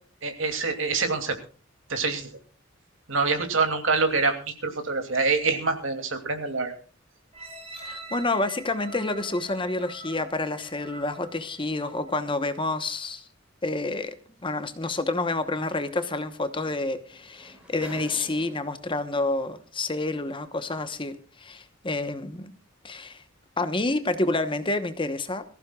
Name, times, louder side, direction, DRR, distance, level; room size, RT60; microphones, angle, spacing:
voice 1, 0.2-1.4 1.9-2.3 3.1-6.7, right 4 dB, 70° right, 6 dB, 2.7 m, -25 dB
sound 1, 7.3-12.3 12.8-12.9, right 2 dB, 30° right, 4.3 m, -44 dB
voice 2, 7.8-13.2 13.6-14.1 14.4-22.5 22.8-23.2 23.6-25.4, left 2 dB, 25° left, 10 dB, 1.0 m, -29 dB
sound 2, 14.5-14.6 16.3-16.4 16.6-18.9 19.8-19.9, right 1 dB, 5° right, 5.1 m, -46 dB
23.0 x 15.0 x 2.4 m, 0.38 s
head